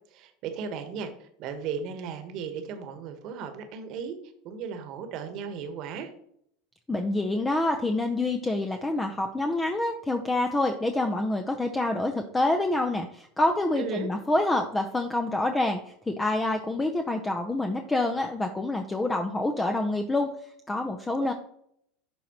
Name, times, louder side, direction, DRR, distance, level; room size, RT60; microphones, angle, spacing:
voice 1, 0.1-4.2 4.4-6.1 13.8-14.1 21.2-21.3, right 6 dB, 50° right, 7 dB, 1.2 m, -36 dB
voice 2, 6.9-20.3 20.7-21.3, left 2 dB, 15° left, 5 dB, 0.7 m, -27 dB
11.5 x 4.0 x 3.0 m, 0.68 s
figure-of-eight pair, 80°, 0 cm